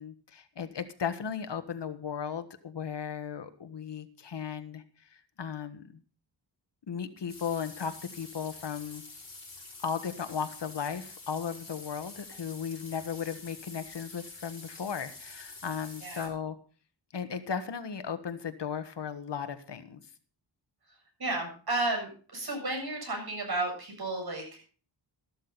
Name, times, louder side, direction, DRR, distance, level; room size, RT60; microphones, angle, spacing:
voice 1, 0.0-6.0 6.9-9.0 9.8-16.6 17.1-20.0, left 7 dB, 70° left, 10 dB, 1.5 m, -36 dB
sound 1, 7.3-16.3, left 3 dB, 35° left, 5.7 m, -47 dB
voice 2, 21.2-24.7, right 2 dB, 55° right, 2 dB, 7.6 m, -33 dB
14.0 x 12.5 x 4.0 m, 0.39 s
wide cardioid pair, 105°, 44 cm